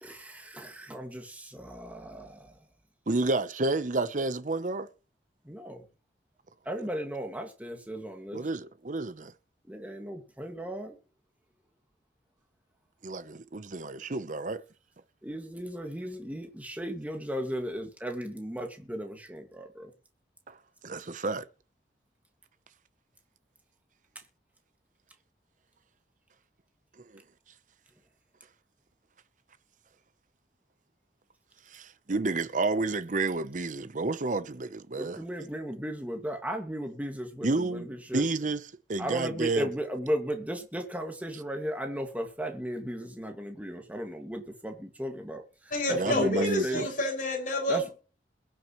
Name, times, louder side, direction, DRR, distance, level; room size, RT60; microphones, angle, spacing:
voice 1, 0.0-2.4 5.5-5.8 6.7-8.4 9.7-10.9 15.2-19.9 34.9-38.2 39.0-45.4 46.1-46.8 47.7-47.9, equal, 10° right, 1.9 m, -36 dB
voice 2, 3.1-4.9 8.3-9.3 13.0-14.6 20.8-21.4 31.7-35.2 37.4-37.9 38.1-39.7 45.9-46.9, right 3 dB, 45° right, 0.8 m, -30 dB
voice 3, 45.7-47.9, left 1 dB, 50° left, 5.9 m, -29 dB
22.0 x 7.7 x 3.1 m
head